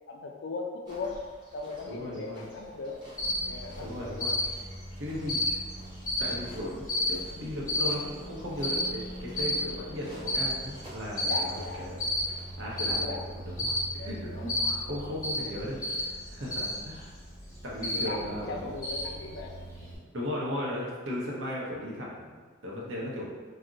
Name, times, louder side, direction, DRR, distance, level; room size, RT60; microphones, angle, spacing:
voice 1, 0.1-1.2 1.5-3.0 3.4-4.2 11.2-11.9 13.0-13.3 14.0-14.5 16.6-16.8 17.9-19.5 19.8-19.9, left 3 dB, 65° left, 2 dB, 0.4 m, -38 dB
sound 1, 0.8-13.0, right 1 dB, 25° right, 0.6 m, -52 dB
voice 2, 1.8-2.4 3.8-4.4 5.0-5.6 6.2-12.0 12.6-13.0 13.3-17.1 17.6-18.7 20.1-22.4 22.6-23.3, left 1 dB, 80° right, -4 dB, 0.8 m, -36 dB
Cricket, 3.2-20.0, left 1 dB, 15° left, 0.8 m, -33 dB
2.4 x 2.1 x 3.8 m, 1.5 s
head